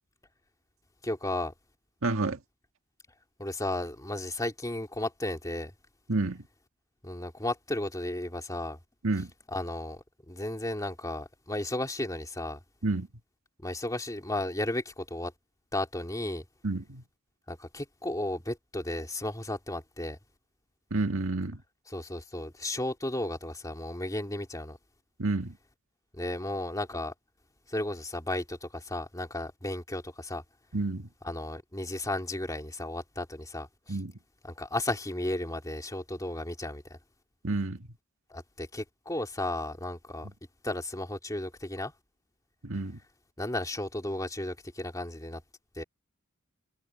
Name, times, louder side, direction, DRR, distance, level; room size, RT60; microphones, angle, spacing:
voice 1, 1.0-1.5 3.4-5.7 7.0-8.8 9.5-12.6 13.6-15.3 15.7-16.4 17.5-20.2 21.9-24.8 26.1-27.1 27.7-30.4 31.2-34.0 34.4-37.0 38.3-40.3 40.6-41.9 43.4-45.4 45.8-45.9, left 1 dB, 15° left, 2.6 m, -34 dB
voice 2, 2.0-2.4 6.1-6.4 9.0-9.3 12.8-13.1 16.6-17.0 20.9-21.6 25.2-25.6 30.7-31.1 33.9-34.1 37.4-37.8 42.6-43.0, right 2 dB, 65° right, 1.9 m, -29 dB
head